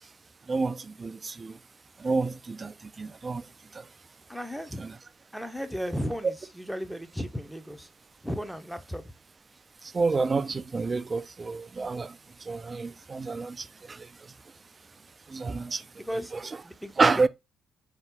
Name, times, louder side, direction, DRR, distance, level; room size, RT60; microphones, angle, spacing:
voice 1, 0.5-1.6 2.0-3.5 3.7-3.9 4.8-5.0 9.8-14.1 15.3-15.8 16.1-16.6 17.0-17.3, right 4 dB, 35° right, 0.4 m, -29 dB
voice 2, 4.3-4.8 5.3-7.9 8.2-9.0 16.0-16.3 16.6-17.3, equal, ahead, 0.7 m, -35 dB
3.6 x 2.9 x 3.4 m
hypercardioid pair, 50°, 0 cm